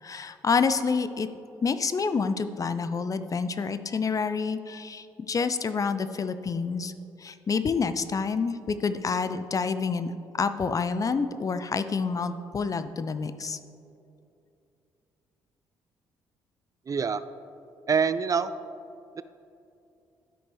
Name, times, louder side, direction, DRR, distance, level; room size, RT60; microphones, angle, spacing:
voice 1, 0.0-1.3 1.6-6.9 7.2-13.6, left 5 dB, 35° left, 12 dB, 0.5 m, -28 dB
voice 2, 16.9-17.2 17.9-18.5 19.2-19.3, right 6 dB, 35° right, 13 dB, 0.3 m, -25 dB
13.0 x 5.2 x 3.5 m, 2.6 s
hypercardioid pair, 55°, 10 cm